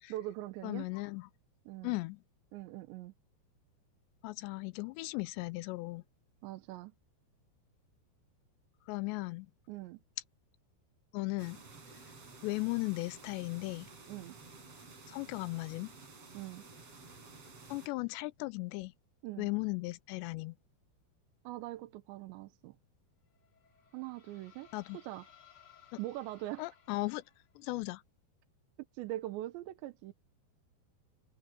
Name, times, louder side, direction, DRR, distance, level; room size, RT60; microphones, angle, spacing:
voice 1, 0.1-0.9 1.7-2.0 2.5-3.1 6.4-6.9 9.7-10.0 14.1-14.4 16.3-16.6 19.2-19.5 21.4-22.8 23.9-24.7 24.9-25.3 26.0-26.7 28.9-30.1, right 15 dB, 85° right, 3.3 m, -42 dB
voice 2, 0.6-1.3 1.8-2.2 4.2-6.0 8.9-9.5 11.1-11.6 12.4-13.9 15.1-15.9 17.7-18.9 19.4-20.5 24.7-25.0 26.6-27.2 27.6-28.0, left 23 dB, 85° left, 2.9 m, -36 dB
sound 1, 11.4-17.9, right 3 dB, 35° right, 5.8 m, -53 dB
sound 2, 23.3-27.6, left 8 dB, 35° left, 3.1 m, -62 dB
omnidirectional pair, 5.0 m